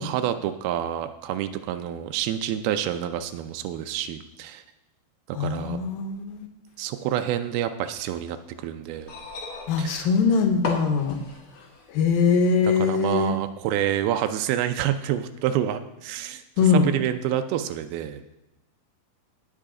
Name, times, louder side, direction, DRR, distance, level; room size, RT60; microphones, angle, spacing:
voice 1, 0.0-4.6 5.3-5.8 6.8-9.1 9.8-10.1 12.6-18.2, right 11 dB, 90° right, 8 dB, 2.5 m, -28 dB
voice 2, 5.4-6.5 9.7-11.2 11.9-13.4 16.6-16.9, left 5 dB, 75° left, 6 dB, 2.6 m, -22 dB
sound 1, 8.9-11.9 13.0-13.1, left 3 dB, 50° left, 1.7 m, -36 dB
17.5 x 5.9 x 3.7 m, 0.95 s
omnidirectional pair, 4.3 m